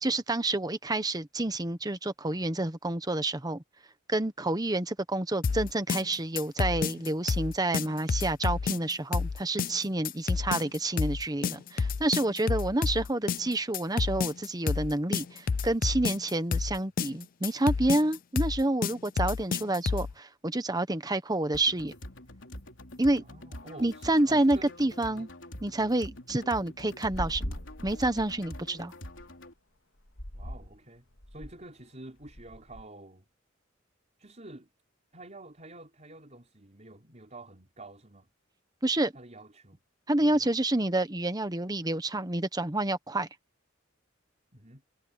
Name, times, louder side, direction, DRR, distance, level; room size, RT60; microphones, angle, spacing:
voice 1, 0.0-3.6 4.1-21.9 23.0-23.2 23.8-25.3 25.6-27.6 27.8-28.9 38.8-39.1 40.1-43.3, right 2 dB, 20° right, 1.2 m, -28 dB
sound 1, 5.4-20.1, left 5 dB, 45° left, 0.4 m, -29 dB
sound 2, 21.5-29.5, left 1 dB, 70° left, 4.0 m, -45 dB
voice 2, 23.2-25.3 30.3-33.3 34.2-34.7 35.1-38.3 39.1-39.8 40.2-40.5 44.5-44.8, right 2 dB, 35° right, 5.4 m, -49 dB
sound 3, 27.1-29.2 30.1-30.8 31.1-31.7 32.2-32.8, equal, 85° left, 3.3 m, -40 dB
head